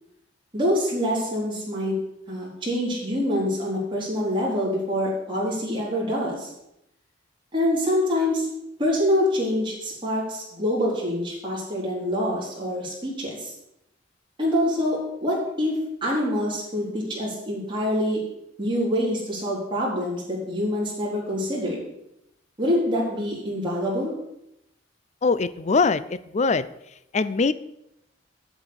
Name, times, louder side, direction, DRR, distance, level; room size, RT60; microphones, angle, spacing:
voice 1, 0.5-2.0 2.3-6.5 7.5-8.5 8.8-13.5 14.4-18.2 18.6-21.8 22.6-24.1, left 1 dB, 25° right, -5 dB, 4.4 m, -25 dB
voice 2, 25.2-26.7 27.1-27.5, left 4 dB, 40° left, 16 dB, 0.5 m, -22 dB
8.1 x 7.2 x 8.6 m, 0.83 s
head